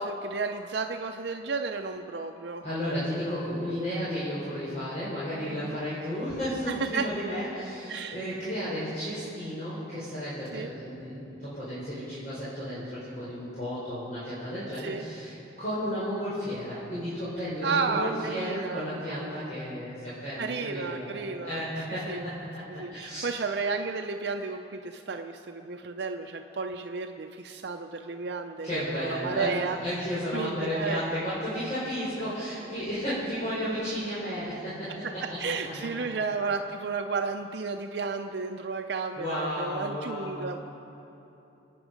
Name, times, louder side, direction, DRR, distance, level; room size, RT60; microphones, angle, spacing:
voice 1, 0.0-2.6 5.5-5.8 6.7-7.1 7.9-8.2 10.5-10.7 14.8-15.0 17.6-18.9 20.4-21.6 22.1-22.3 22.7-30.1 30.3-31.0 35.0-40.6, right 4 dB, 65° right, 5 dB, 0.6 m, -32 dB
voice 2, 2.6-23.3 28.6-36.1 39.2-40.6, equal, 40° left, -10 dB, 4.3 m, -33 dB
28.0 x 9.3 x 5.1 m, 2.9 s
head